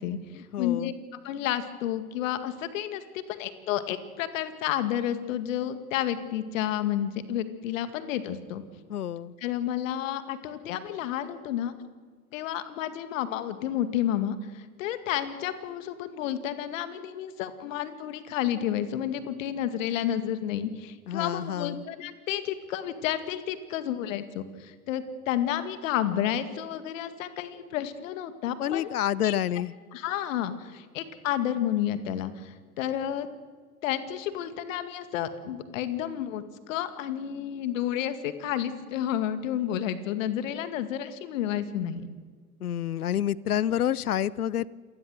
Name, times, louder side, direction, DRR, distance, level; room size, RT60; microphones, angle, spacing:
voice 1, 0.0-8.6 9.4-11.7 12.3-28.9 29.2-29.4 29.9-33.3 33.8-42.1, left 11 dB, 60° left, 11 dB, 2.1 m, -31 dB
voice 2, 0.5-0.9 8.9-9.3 21.1-21.8 28.6-29.7 42.6-44.7, left 10 dB, 80° left, 22 dB, 0.7 m, -28 dB
27.0 x 20.0 x 6.5 m, 1.5 s
figure-of-eight pair, 85°, 44 cm